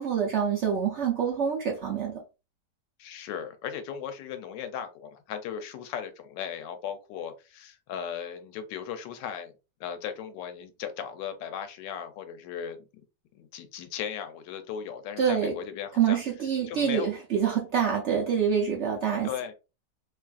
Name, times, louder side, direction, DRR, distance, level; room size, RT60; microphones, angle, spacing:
voice 1, 0.0-2.2 15.2-15.5 16.0-19.3, right 7 dB, 75° right, 0.6 m, -26 dB
voice 2, 3.0-9.5 9.8-12.8 13.3-16.2 16.7-17.1 19.2-19.5, left 8 dB, 85° left, 1.2 m, -37 dB
3.0 x 2.4 x 2.3 m
omnidirectional pair, 1.9 m